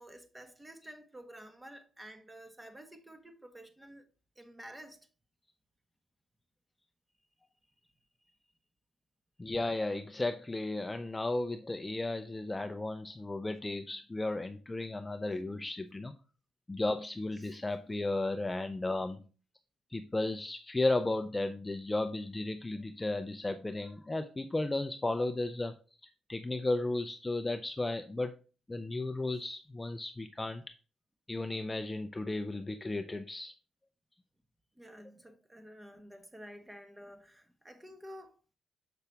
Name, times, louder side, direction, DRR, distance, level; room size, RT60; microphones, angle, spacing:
voice 1, 0.0-4.1 4.4-5.1 17.4-17.6 34.7-38.4, equal, 10° right, 1.2 m, -51 dB
voice 2, 9.4-16.1 16.7-19.2 19.9-25.7 26.3-28.3 28.7-30.6 31.3-33.5, left 2 dB, 15° left, 0.5 m, -34 dB
6.9 x 5.6 x 3.5 m
cardioid pair, 90°, 0 cm